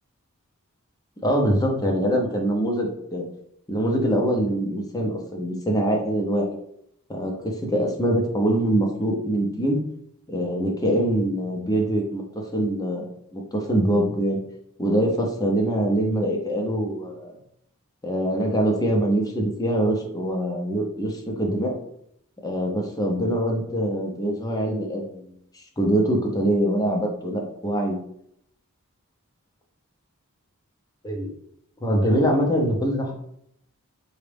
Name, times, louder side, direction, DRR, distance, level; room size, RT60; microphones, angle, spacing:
voice 1, 1.2-3.2 3.7-6.6 7.1-9.8 10.3-14.4 14.8-17.4 18.0-21.8 22.4-28.0 31.0-31.3 31.8-33.1, right 1 dB, 15° left, 0 dB, 0.8 m, -24 dB
5.1 x 2.4 x 3.4 m, 0.72 s
head